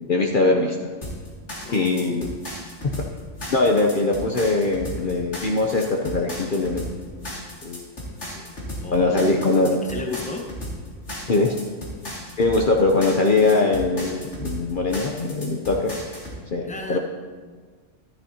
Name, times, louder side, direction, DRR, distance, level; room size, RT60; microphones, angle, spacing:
voice 1, 0.0-0.9 1.7-2.3 3.5-6.9 7.6-7.9 8.9-9.8 11.3-11.6 12.4-15.9 16.5-17.0, left 3 dB, 50° left, 1 dB, 0.8 m, -21 dB
sound 1, 1.0-16.4, equal, 70° left, 2.7 m, -35 dB
voice 2, 1.6-2.1 8.8-9.5 9.8-10.5 16.6-17.0, left 3 dB, 5° left, 1 dB, 1.0 m, -33 dB
12.5 x 11.5 x 2.8 m, 1.5 s
omnidirectional pair, 1.2 m